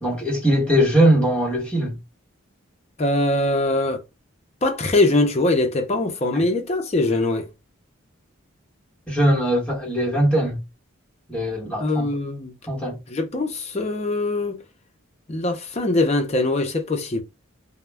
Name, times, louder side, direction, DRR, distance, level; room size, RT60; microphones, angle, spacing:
voice 1, 0.0-2.0 6.3-6.4 9.1-10.6 11.3-12.1 12.7-13.0, equal, 5° left, 1.0 m, -20 dB
voice 2, 3.0-4.0 4.6-7.5 11.8-12.5 13.1-14.6 15.3-17.2, left 2 dB, 30° left, 0.5 m, -22 dB
2.3 x 2.1 x 3.2 m
head